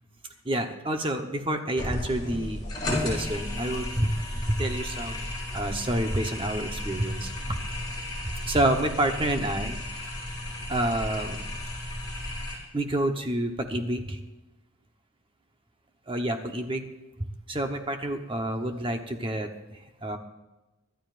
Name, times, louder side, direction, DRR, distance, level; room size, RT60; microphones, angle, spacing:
voice 1, 0.4-7.6 8.2-9.8 10.7-11.4 12.7-14.2 16.1-16.8 17.2-19.5 20.0-20.2, right 1 dB, 25° right, 5 dB, 1.0 m, -28 dB
sound 1, 1.8-12.6, left 1 dB, 20° left, 4.4 m, -34 dB
23.5 x 12.5 x 2.5 m, 1.1 s
head